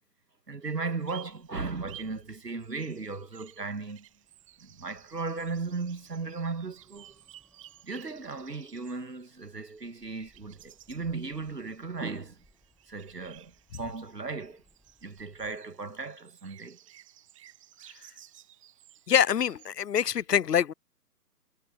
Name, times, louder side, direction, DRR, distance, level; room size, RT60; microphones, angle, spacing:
voice 1, 0.5-4.1 4.6-7.1 7.8-12.4 12.9-14.6 15.0-16.8, right 4 dB, 80° right, 1.7 m, -36 dB
sound 1, 0.6-19.7, right 13 dB, 20° right, 1.2 m, -55 dB
sound 2, 2.8-15.6, left 1 dB, ahead, 0.7 m, -68 dB
voice 2, 19.1-20.7, left 9 dB, 80° left, 0.6 m, -25 dB
figure-of-eight pair, 135°, 47 cm